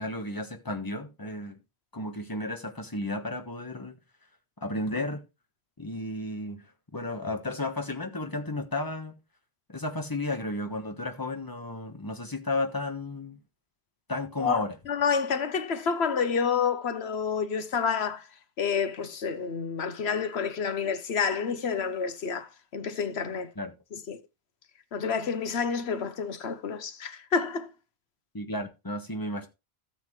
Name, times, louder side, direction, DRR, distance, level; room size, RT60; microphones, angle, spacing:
voice 1, 0.0-1.6 1.9-3.9 4.6-5.2 5.8-6.6 6.9-9.2 9.7-13.4 14.1-14.7 23.6-23.7 28.3-29.5, left 2 dB, 20° left, 1.3 m, -33 dB
voice 2, 14.4-18.3 18.6-23.5 23.9-24.2 24.9-27.7, left 6 dB, 75° left, 1.2 m, -29 dB
13.0 x 7.7 x 3.2 m
omnidirectional pair, 1.1 m